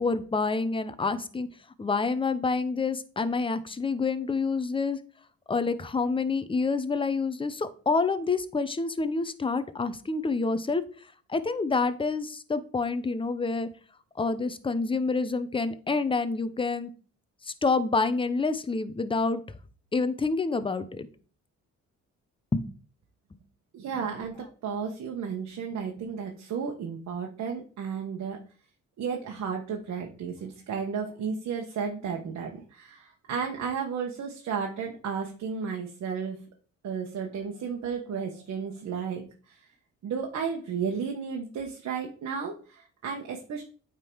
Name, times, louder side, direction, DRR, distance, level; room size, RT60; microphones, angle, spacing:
voice 1, 0.0-1.5 1.8-5.0 5.5-10.8 11.3-13.7 14.2-16.9 17.6-19.4 19.9-21.1 22.5-22.6, left 4 dB, 15° left, 12 dB, 0.7 m, -27 dB
voice 2, 23.7-24.4 24.6-28.4 29.0-36.4 36.8-39.6 40.0-43.6, right 6 dB, 65° right, 1 dB, 1.2 m, -33 dB
8.8 x 3.8 x 4.6 m, 0.42 s
cardioid pair, 90°, 30 cm